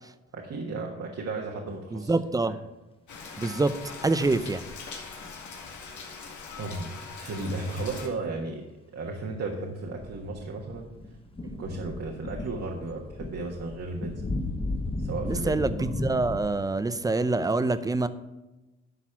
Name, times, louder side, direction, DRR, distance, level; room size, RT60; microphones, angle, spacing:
voice 1, 0.3-2.1 2.5-2.6 6.6-6.9 7.1-8.7 8.9-10.9 11.4-14.3 15.0-15.5 15.8-15.9, right 3 dB, 55° right, -1 dB, 1.4 m, -34 dB
voice 2, 1.9-2.6 3.4-3.7 4.0-4.6 15.2-18.1, right 3 dB, 10° right, 13 dB, 0.5 m, -26 dB
Rain, 3.1-8.1, left 5 dB, 75° left, 2.1 m, -41 dB
sound 1, 9.9-16.4, left 2 dB, 20° left, 1.1 m, -35 dB
11.5 x 4.1 x 5.9 m, 1.1 s
cardioid pair, 90°, 30 cm